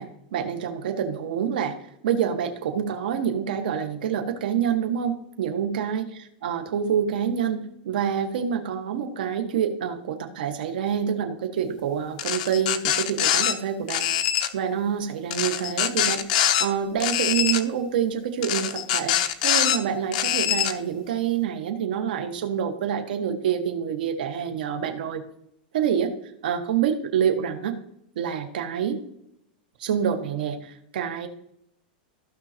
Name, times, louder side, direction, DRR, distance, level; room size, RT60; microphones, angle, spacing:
voice 1, 0.0-1.7 2.0-6.1 6.4-14.1 14.5-19.2 19.4-25.2 25.7-26.1 26.4-27.7 28.1-29.0 29.8-31.3, right 8 dB, 70° right, 6 dB, 1.5 m, -27 dB
sound 1, 12.2-13.5 13.9-14.5 15.3-16.7 17.0-17.6 18.4-19.8 20.1-20.7, left 10 dB, 55° left, 0.8 m, -23 dB
15.5 x 5.6 x 2.9 m, 0.76 s
supercardioid pair, 160°, 5 cm